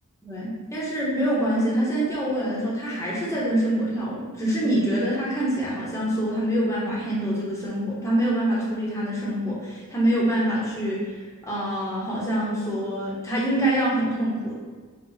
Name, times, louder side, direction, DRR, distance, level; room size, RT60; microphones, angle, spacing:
voice 1, 0.2-11.1 11.4-14.5, right 1 dB, 15° left, -6 dB, 1.1 m, -25 dB
4.7 x 2.4 x 4.2 m, 1.4 s
head